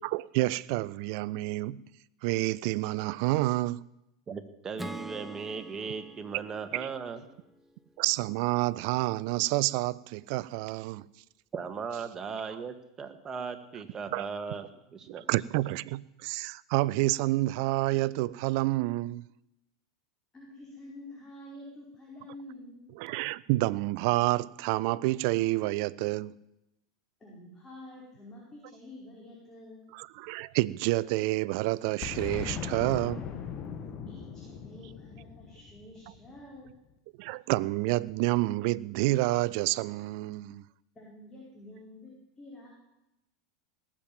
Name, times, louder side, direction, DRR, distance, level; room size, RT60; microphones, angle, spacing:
voice 1, 0.0-1.8 2.2-3.8 6.7-6.9 8.0-11.1 14.1-14.3 15.1-19.2 23.0-26.4 29.9-33.3 37.2-40.6, right 19 dB, 60° right, 0.5 m, -29 dB
voice 2, 4.3-7.2 11.5-15.3, right 5 dB, 25° right, 1.7 m, -38 dB
Acoustic guitar / Strum, 4.8-8.2, right 1 dB, 5° right, 0.7 m, -45 dB
voice 3, 20.3-22.9 27.2-29.9 34.1-36.7 40.9-42.7, left 1 dB, 20° left, 5.0 m, -48 dB
Boom, 32.0-36.7, left 7 dB, 40° left, 1.7 m, -39 dB
18.5 x 7.6 x 8.9 m
hypercardioid pair, 95°, 2 cm